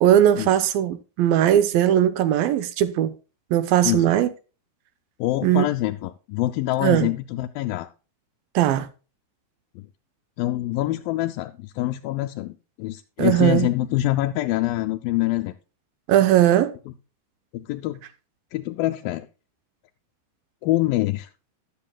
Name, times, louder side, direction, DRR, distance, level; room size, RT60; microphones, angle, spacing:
voice 1, 0.0-3.1 3.5-4.3 5.4-5.7 6.8-7.1 8.6-8.9 13.2-13.7 16.1-16.7, right 11 dB, 75° right, 2.4 m, -19 dB
voice 2, 5.2-7.9 9.8-9.9 10.4-15.5 17.5-18.0 18.5-19.3 20.6-21.3, left 16 dB, 80° left, 2.2 m, -25 dB
14.0 x 11.0 x 2.2 m
omnidirectional pair, 4.4 m